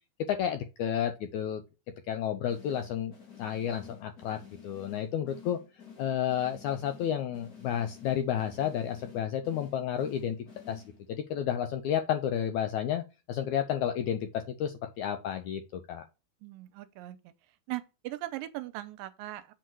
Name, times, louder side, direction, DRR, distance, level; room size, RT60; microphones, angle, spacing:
voice 1, 0.3-1.6 2.1-3.1 3.4-4.4 4.6-5.6 6.0-10.4 10.7-10.8 11.1-16.0, left 9 dB, 85° left, 1.7 m, -31 dB
sound 1, 2.5-11.3, left 7 dB, 30° left, 2.1 m, -52 dB
voice 2, 16.4-17.3 17.7-19.5, right 16 dB, 80° right, 2.2 m, -39 dB
7.7 x 4.7 x 4.6 m
omnidirectional pair, 4.1 m